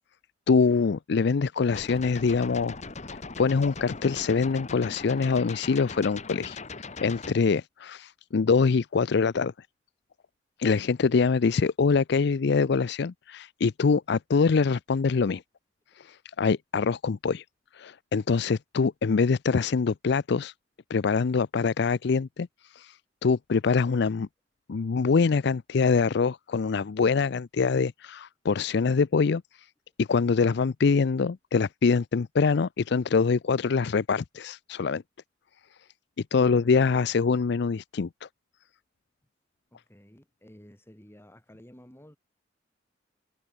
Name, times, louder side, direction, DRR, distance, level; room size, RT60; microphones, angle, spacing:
voice 1, 0.5-2.8 3.4-6.6 7.0-9.5 10.6-15.4 16.0-17.4 17.7-20.5 20.9-22.5 22.7-23.0 23.2-24.3 24.7-29.4 30.0-35.0 36.3-38.3, left 5 dB, 65° left, 0.5 m, -24 dB
sound 1, 1.7-7.3, left 3 dB, 40° left, 1.6 m, -40 dB
voice 2, 39.7-42.2, equal, 15° left, 3.6 m, -52 dB
head